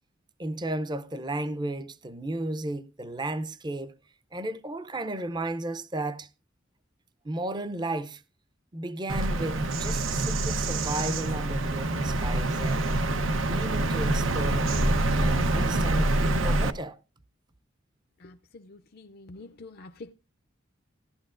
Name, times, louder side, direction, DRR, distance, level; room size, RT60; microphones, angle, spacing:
voice 1, 0.4-3.9 4.3-6.3 7.2-8.2 8.7-12.9 13.4-17.0, right 1 dB, 20° right, 0.5 m, -34 dB
Bird vocalization bird call bird song, 9.1-16.7, right 2 dB, 90° right, 0.9 m, -26 dB
voice 2, 18.2-20.1, left 3 dB, 50° left, 0.5 m, -46 dB
16.5 x 12.0 x 2.5 m
head